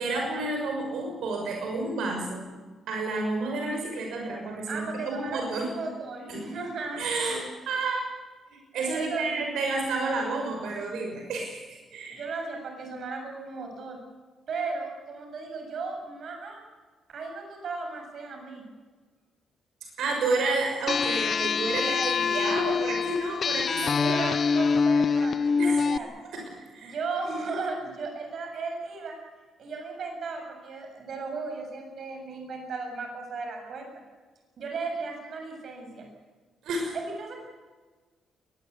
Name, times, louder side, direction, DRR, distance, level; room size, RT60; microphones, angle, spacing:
voice 1, 0.0-2.5 2.9-5.7 6.3-6.4 7.0-8.1 8.5-12.2 19.8-24.2 25.6-25.9 26.2-27.0 36.6-36.9, right 3 dB, 80° right, 2 dB, 6.2 m, -30 dB
voice 2, 4.7-7.4 8.9-9.5 12.1-14.0 14.5-16.6 17.1-18.6 23.8-26.1 26.8-29.2 29.6-33.9 34.6-36.1 36.9-37.3, right 4 dB, 50° right, 3 dB, 7.4 m, -35 dB
sound 1, 20.9-26.0, left 5 dB, 35° left, 0.6 m, -25 dB
22.5 x 20.0 x 8.4 m, 1.4 s
cardioid pair, 165°, 0 cm